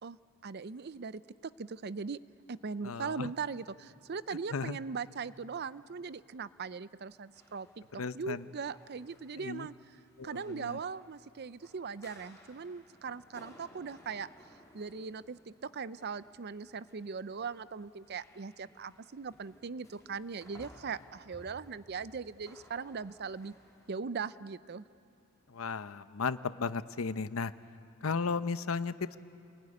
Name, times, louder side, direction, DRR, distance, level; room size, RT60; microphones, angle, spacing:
voice 1, 0.4-2.2 2.5-7.8 8.1-9.7 10.2-14.3 14.7-23.5 23.9-24.8, right 5 dB, 50° right, 16 dB, 0.5 m, -40 dB
voice 2, 2.8-3.3 4.5-4.8 7.9-8.5 9.4-9.7 10.2-10.8 25.5-27.5 28.0-28.9, left 4 dB, 90° left, 13 dB, 0.8 m, -35 dB
sound 1, 7.3-23.9, equal, 15° left, 3.5 m, -60 dB
28.0 x 21.5 x 9.7 m, 2.6 s
head